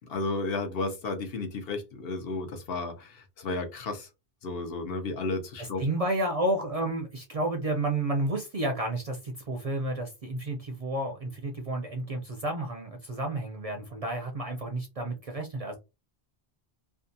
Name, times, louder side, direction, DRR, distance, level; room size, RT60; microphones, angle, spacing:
voice 1, 0.1-4.1 4.4-5.9, left 3 dB, 70° left, 6 dB, 0.8 m, -33 dB
voice 2, 5.6-15.8, right 1 dB, 50° right, 3 dB, 0.4 m, -31 dB
2.6 x 2.3 x 2.5 m, 0.26 s
omnidirectional pair, 1.0 m